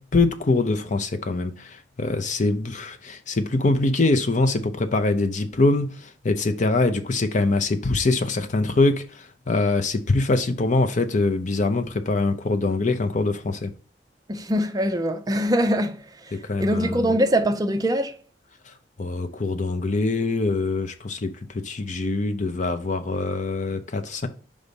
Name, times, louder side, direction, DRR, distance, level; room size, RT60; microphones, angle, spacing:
voice 1, 0.0-13.7 16.4-17.2 19.0-21.3 21.6-24.3, left 2 dB, 45° left, 0.6 m, -23 dB
voice 2, 14.3-16.0 16.6-18.2, equal, 20° right, 0.5 m, -22 dB
5.2 x 4.0 x 5.2 m
head